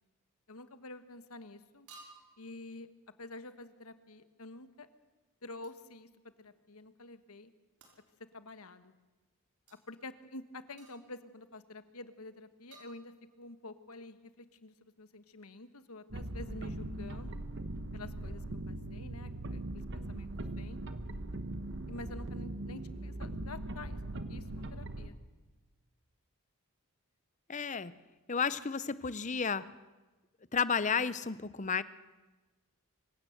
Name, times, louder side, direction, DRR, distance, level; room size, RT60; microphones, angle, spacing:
voice 1, 0.5-1.9 2.4-2.9 3.2-4.9 5.4-6.1 6.4-7.5 8.3-8.9 9.9-17.4 17.9-18.4 18.7-19.6 19.9-20.8 21.9-24.0 24.3-25.2, left 2 dB, 85° left, 11 dB, 1.4 m, -48 dB
sound 1, 0.5-0.8 1.9-2.5 5.6-5.9 7.8-8.1 9.7-9.8 10.8-11.3 12.7-13.5, right 3 dB, 85° right, 5.4 m, -57 dB
sound 2, 16.1-25.1, right 1 dB, 55° right, 1.2 m, -40 dB
voice 2, 27.5-27.9 28.3-29.6 30.5-31.8, left 6 dB, 35° left, 16 dB, 0.7 m, -32 dB
25.0 x 16.0 x 7.9 m, 1.2 s
head